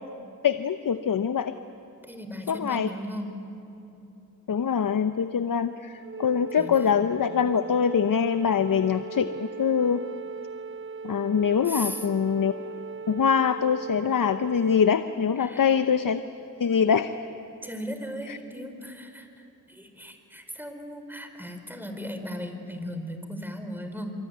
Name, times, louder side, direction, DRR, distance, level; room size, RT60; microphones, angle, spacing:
voice 1, 0.4-1.5 2.5-2.9 4.5-10.0 11.0-12.5 13.1-16.2 16.6-17.1 18.3-18.4, left 7 dB, 70° left, 10 dB, 0.8 m, -24 dB
voice 2, 2.0-3.3 6.6-7.1 11.6-12.1 15.4-15.7 17.6-24.1, equal, 5° right, 6 dB, 4.6 m, -37 dB
Wind instrument woodwind instrument, 6.0-15.2, right 5 dB, 35° right, 0.6 m, -39 dB
25.5 x 24.5 x 9.5 m, 2.9 s
cardioid pair, 45°, 34 cm